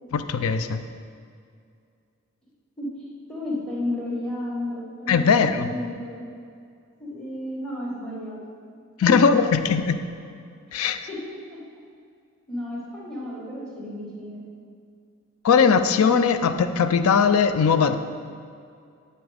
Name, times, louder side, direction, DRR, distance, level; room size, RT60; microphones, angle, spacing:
voice 1, 0.1-0.8 5.1-5.7 9.0-10.0 10.7-11.0 15.4-18.0, left 6 dB, 85° left, 11 dB, 0.4 m, -19 dB
voice 2, 3.3-6.1 7.0-8.4 9.0-9.1 11.1-11.6 12.5-14.4, left 1 dB, 5° left, -6 dB, 1.5 m, -32 dB
9.2 x 3.9 x 4.9 m, 2.3 s
head